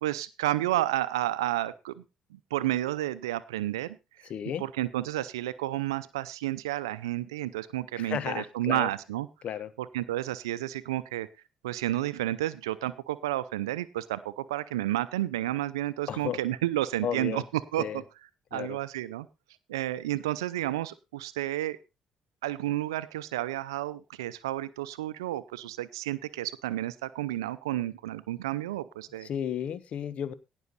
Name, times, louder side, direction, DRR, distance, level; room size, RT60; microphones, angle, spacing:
voice 1, 0.0-2.0 2.3-4.0 4.6-9.3 9.9-11.3 11.6-17.4 17.7-17.9 18.5-19.3 19.7-21.8 22.4-29.3, right 14 dB, 90° right, 16 dB, 0.5 m, -31 dB
voice 2, 4.3-4.6 8.0-8.9 9.4-9.7 16.1-16.4 17.0-17.4 17.8-18.0 18.5-18.8 29.2-30.3, left 9 dB, 60° left, 15 dB, 1.2 m, -33 dB
17.5 x 6.3 x 4.1 m, 0.27 s
hypercardioid pair, 55°, 2 cm